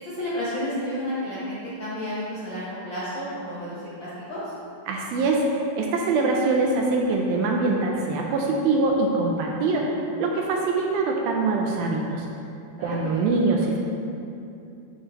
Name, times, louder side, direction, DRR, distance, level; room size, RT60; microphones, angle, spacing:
voice 1, 0.0-4.5 9.8-10.0 12.8-13.2, left 1 dB, 85° left, -11 dB, 1.0 m, -32 dB
voice 2, 4.9-12.3 12.8-13.8, right 3 dB, 80° right, 0 dB, 2.3 m, -23 dB
10.0 x 6.5 x 2.9 m, 2.7 s
omnidirectional pair, 4.6 m